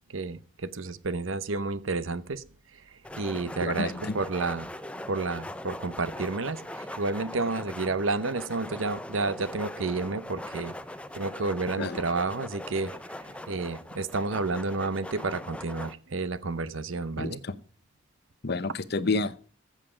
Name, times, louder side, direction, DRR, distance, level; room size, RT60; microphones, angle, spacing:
voice 1, 0.1-2.4 3.2-4.7 5.1-10.7 11.1-13.0 13.3-17.4, right 3 dB, 85° right, 16 dB, 0.9 m, -30 dB
sound 1, 3.0-15.9, left 1 dB, 5° left, 0.6 m, -40 dB
voice 2, 3.6-4.2 11.8-12.0 17.2-17.6 18.4-19.4, left 3 dB, 55° left, 15 dB, 0.8 m, -30 dB
14.5 x 7.5 x 5.0 m, 0.39 s
head